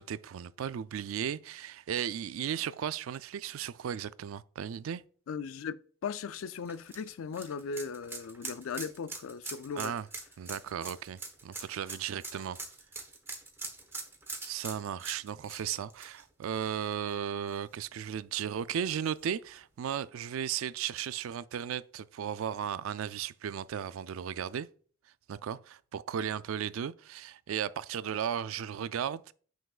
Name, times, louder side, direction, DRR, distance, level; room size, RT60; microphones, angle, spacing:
voice 1, 0.0-5.0 9.8-10.1 10.4-12.6 14.4-24.7 25.3-29.2, right 8 dB, 90° right, 0.3 m, -35 dB
voice 2, 5.3-9.9, left 5 dB, 85° left, 0.4 m, -38 dB
sound 1, 6.3-17.1 17.5-17.6 19.0-19.1, right 3 dB, 10° right, 1.1 m, -43 dB
6.9 x 6.1 x 2.4 m
head